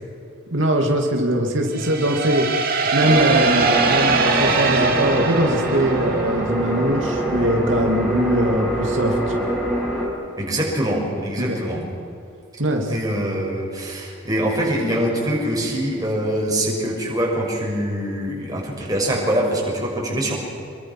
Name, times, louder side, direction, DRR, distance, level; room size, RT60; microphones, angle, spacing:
voice 1, 0.5-2.5 2.9-9.5 11.5-11.6 12.6-12.9, right 1 dB, 70° right, 2 dB, 2.7 m, -21 dB
sound 1, 1.7-6.5, right 4 dB, 45° right, 2.6 m, -21 dB
sound 2, 3.0-10.1, right 1 dB, ahead, 5.9 m, -24 dB
voice 2, 10.3-11.8 12.9-20.4, right 1 dB, 20° right, -2 dB, 6.2 m, -24 dB
27.0 x 23.0 x 6.2 m, 2.7 s
head